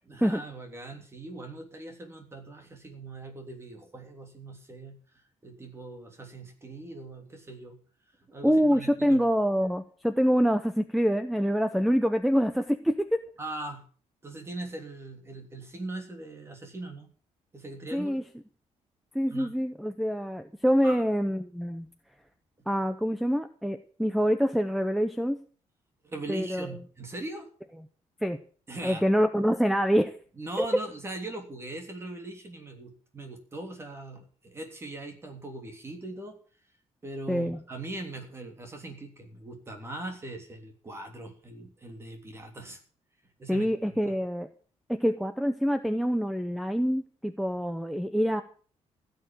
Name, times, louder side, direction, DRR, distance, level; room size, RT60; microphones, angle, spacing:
voice 1, 0.1-5.0 5.4-7.8 8.3-9.2 13.4-13.9 14.2-17.1 17.5-18.2 19.3-19.5 20.8-21.0 26.0-27.5 28.7-29.1 30.4-36.4 37.0-42.8 43.4-43.7 44.0-44.1, right 2 dB, 20° right, 5 dB, 3.2 m, -40 dB
voice 2, 8.4-13.2 17.9-18.2 19.1-21.9 22.7-25.4 26.3-26.7 28.2-28.4 28.8-30.2 30.6-30.7 37.3-37.6 43.5-44.5 44.9-48.4, equal, ahead, 10 dB, 0.7 m, -26 dB
16.0 x 6.9 x 8.9 m, 0.43 s
cardioid pair, 165°, 12 cm